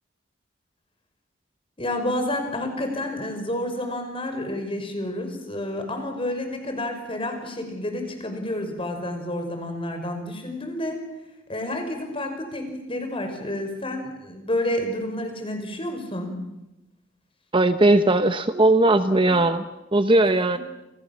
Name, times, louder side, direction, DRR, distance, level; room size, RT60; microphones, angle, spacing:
voice 1, 1.8-11.0 11.5-16.3, left 1 dB, 25° left, 6 dB, 5.7 m, -29 dB
voice 2, 17.5-19.6 19.9-20.6, right 2 dB, 25° right, 10 dB, 0.9 m, -18 dB
29.0 x 28.0 x 7.3 m, 0.95 s
head